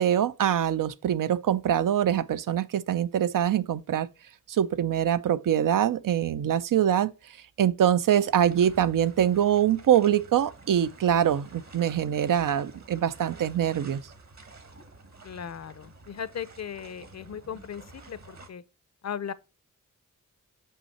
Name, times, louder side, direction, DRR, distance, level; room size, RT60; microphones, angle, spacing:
voice 1, 0.0-4.1 4.5-7.1 7.6-14.0, right 10 dB, 85° right, 0.5 m, -24 dB
sound 1, 8.3-18.5, right 3 dB, 55° right, 1.4 m, -50 dB
voice 2, 15.2-18.6 19.0-19.3, left 8 dB, 55° left, 0.6 m, -37 dB
5.6 x 5.6 x 4.2 m
wide cardioid pair, 70°, 32 cm